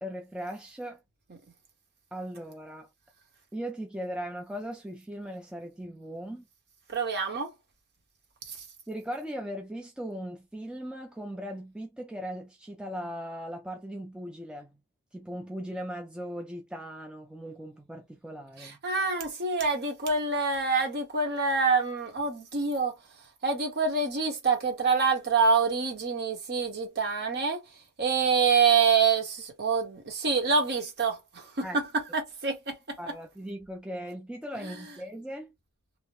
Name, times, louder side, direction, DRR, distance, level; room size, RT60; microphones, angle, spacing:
voice 1, 0.0-1.0 2.1-2.9 3.5-6.4 8.9-14.8 15.1-18.8 31.6-31.8 33.0-35.5, equal, 5° right, 0.3 m, -38 dB
voice 2, 6.9-7.5 8.5-8.6 18.6-23.0 23.4-27.6 28.0-33.0 34.6-34.8, right 5 dB, 45° right, 1.0 m, -26 dB
2.7 x 2.1 x 3.0 m
head